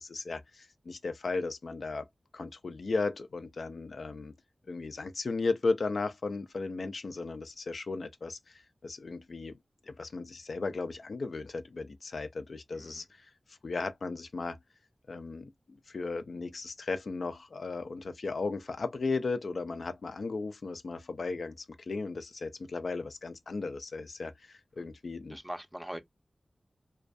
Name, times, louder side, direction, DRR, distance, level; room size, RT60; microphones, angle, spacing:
voice 1, 0.0-2.1 2.3-4.3 4.7-9.6 9.9-13.3 13.6-14.6 15.1-25.4, left 3 dB, 80° left, 0.3 m, -36 dB
voice 2, 12.7-13.0 24.8-24.9 25.3-26.0, equal, 10° right, 0.5 m, -42 dB
2.2 x 2.2 x 2.5 m
cardioid pair, 40°, 0 cm